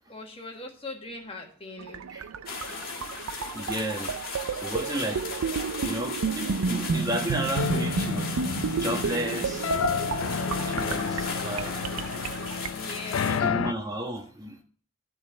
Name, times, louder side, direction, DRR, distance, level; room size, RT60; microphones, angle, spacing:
voice 1, 0.1-2.1 12.7-13.7, left 2 dB, 25° left, 2 dB, 1.5 m, -40 dB
sound 1, 1.8-12.7, right 5 dB, 85° right, 0.5 m, -31 dB
sound 2, 2.5-13.4, left 4 dB, 45° left, 1.8 m, -38 dB
voice 2, 3.5-4.1 4.5-5.2 5.8-9.7 10.6-11.8 13.3-14.6, right 1 dB, 15° right, 2 dB, 1.2 m, -33 dB
sound 3, 7.6-13.7, left 7 dB, 65° left, 0.3 m, -31 dB
11.0 x 4.1 x 7.1 m, 0.43 s
head